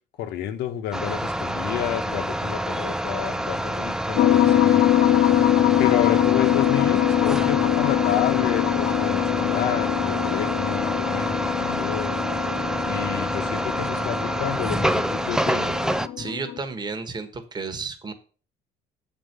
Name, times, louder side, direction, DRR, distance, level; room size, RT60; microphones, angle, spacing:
voice 1, 0.2-4.9 5.8-12.2 12.9-15.9, left 11 dB, 85° left, 8 dB, 1.1 m, -30 dB
sound 1, 0.9-16.1, right 1 dB, 5° right, 0.4 m, -27 dB
sound 2, 4.1-16.6, left 12 dB, 55° left, 0.8 m, -23 dB
voice 2, 16.2-18.1, right 4 dB, 25° right, 7 dB, 1.3 m, -32 dB
7.6 x 4.6 x 6.6 m, 0.39 s
cardioid pair, 110°, 17 cm